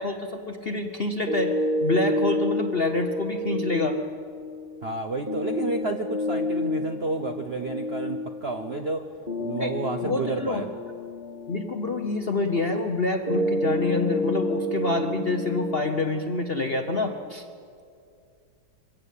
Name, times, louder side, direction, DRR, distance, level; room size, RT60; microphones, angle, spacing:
voice 1, 0.0-4.0 9.5-10.6 11.5-17.4, left 2 dB, 40° left, 5 dB, 0.8 m, -27 dB
sound 1, 1.3-17.3, left 1 dB, 20° right, 3.3 m, -30 dB
voice 2, 4.8-9.0 9.4-10.6, right 3 dB, 50° right, 5 dB, 0.8 m, -30 dB
23.0 x 16.5 x 8.4 m, 2.3 s
omnidirectional pair, 2.2 m